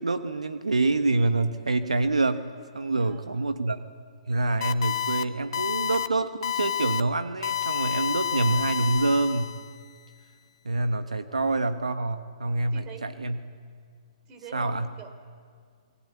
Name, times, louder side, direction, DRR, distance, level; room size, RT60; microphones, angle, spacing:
voice 1, 0.0-2.5 2.7-3.8 4.3-9.6 10.6-13.4 14.5-14.9, right 2 dB, 85° right, 9 dB, 1.3 m, -26 dB
voice 2, 3.0-3.5 11.3-11.4 12.7-13.0 14.3-15.1, right 6 dB, 25° right, 8 dB, 3.6 m, -45 dB
sound 1, 4.6-5.2 5.5-6.1 6.4-7.0 7.4-9.7, left 9 dB, 55° left, 1.1 m, -29 dB
27.5 x 21.5 x 8.5 m, 2.1 s
figure-of-eight pair, 130°, 3 cm